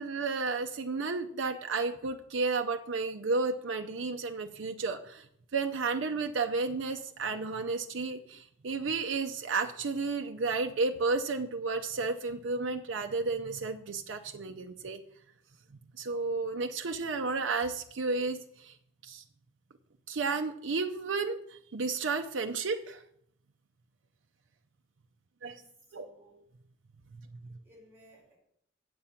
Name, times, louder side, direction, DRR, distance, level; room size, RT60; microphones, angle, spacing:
voice 1, 0.0-15.0 15.7-18.8 19.0-19.2 20.1-23.0 25.4-25.6 25.9-26.1, right 4 dB, 65° right, 5 dB, 0.6 m, -32 dB
voice 2, 25.4-26.4 27.4-28.4, equal, 10° right, -2 dB, 3.3 m, -59 dB
8.6 x 7.7 x 5.7 m, 0.69 s
head